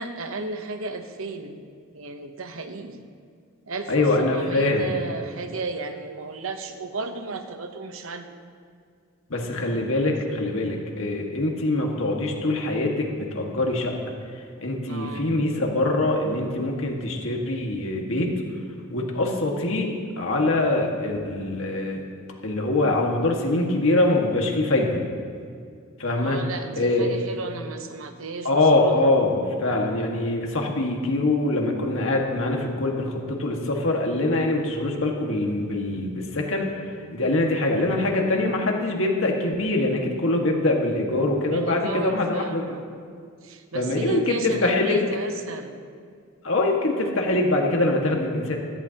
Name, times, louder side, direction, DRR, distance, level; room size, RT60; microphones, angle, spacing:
voice 1, 0.0-3.0 3.7-8.3 9.4-9.6 14.9-15.5 26.2-29.2 41.4-42.8 43.4-45.8, right 3 dB, 75° right, 7 dB, 0.9 m, -34 dB
voice 2, 3.9-4.9 9.3-13.9 14.6-18.4 18.9-22.0 22.4-25.0 26.0-26.4 26.8-27.1 28.4-36.7 37.1-42.8 43.7-45.0 46.4-48.6, left 2 dB, 70° left, 0 dB, 1.8 m, -23 dB
16.5 x 14.0 x 2.9 m, 2.2 s
head